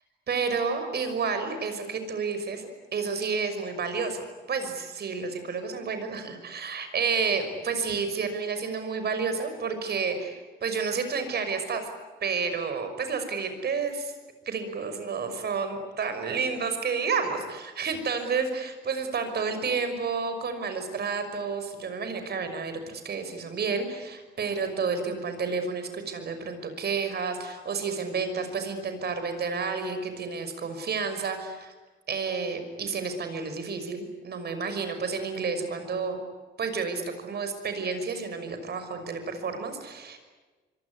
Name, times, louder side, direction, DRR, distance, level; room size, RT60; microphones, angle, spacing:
voice 1, 0.3-11.9 12.2-14.1 14.5-31.7 32.1-36.2 36.6-40.2, right 5 dB, 55° right, 8 dB, 5.9 m, -30 dB
25.0 x 24.0 x 9.7 m, 1.3 s
cardioid pair, 90°, 20 cm